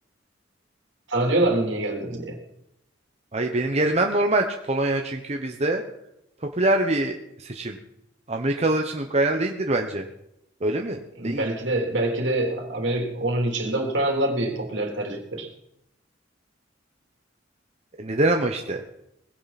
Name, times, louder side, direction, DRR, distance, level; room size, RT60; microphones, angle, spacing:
voice 1, 1.1-2.3 11.2-15.5, right 1 dB, 70° right, 1 dB, 3.4 m, -25 dB
voice 2, 3.3-5.8 6.4-7.8 8.3-10.1 10.6-11.5 18.0-18.8, right 2 dB, 35° right, 3 dB, 1.0 m, -24 dB
20.0 x 16.5 x 4.2 m, 0.82 s
head